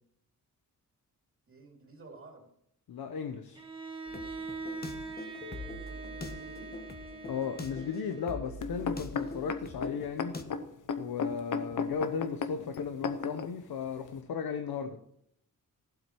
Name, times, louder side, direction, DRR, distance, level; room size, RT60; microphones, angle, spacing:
voice 1, 1.5-2.5 5.4-6.8, right 3 dB, 35° right, 0 dB, 2.6 m, -53 dB
voice 2, 2.9-3.6 7.3-10.4 11.0-15.0, left 6 dB, 80° left, 7 dB, 1.0 m, -35 dB
Bowed string instrument, 3.5-8.6, right 4 dB, 15° right, 1.3 m, -43 dB
sound 1, 4.1-10.4, left 2 dB, 25° left, 1.1 m, -43 dB
sound 2, 8.6-13.5 14.2-14.3, left 5 dB, 60° left, 1.0 m, -34 dB
15.0 x 8.0 x 4.5 m, 0.73 s
wide cardioid pair, 150°, 36 cm